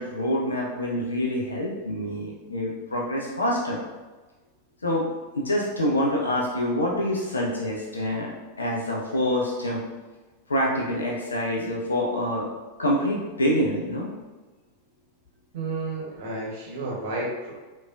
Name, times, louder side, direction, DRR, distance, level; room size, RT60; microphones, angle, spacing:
voice 1, 0.0-3.8 4.8-5.1 5.3-8.3 8.6-9.8 10.5-12.5 12.8-14.1, left 1 dB, 75° left, -2 dB, 0.4 m, -26 dB
voice 2, 15.5-17.5, right 2 dB, 55° right, -3 dB, 0.9 m, -31 dB
3.4 x 2.2 x 2.4 m, 1.2 s
figure-of-eight pair, 90°, 0 cm